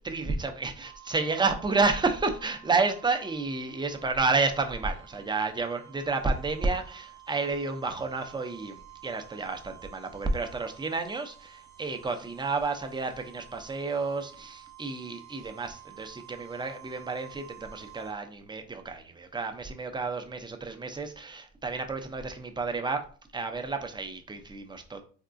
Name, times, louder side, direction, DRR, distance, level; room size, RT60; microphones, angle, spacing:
voice 1, 0.0-23.0 23.3-25.0, right 3 dB, 15° right, 6 dB, 0.4 m, -30 dB
sound 1, 0.8-18.1, right 14 dB, 70° right, 0.8 m, -52 dB
3.6 x 2.3 x 2.5 m, 0.40 s
cardioid pair, 90°, 30 cm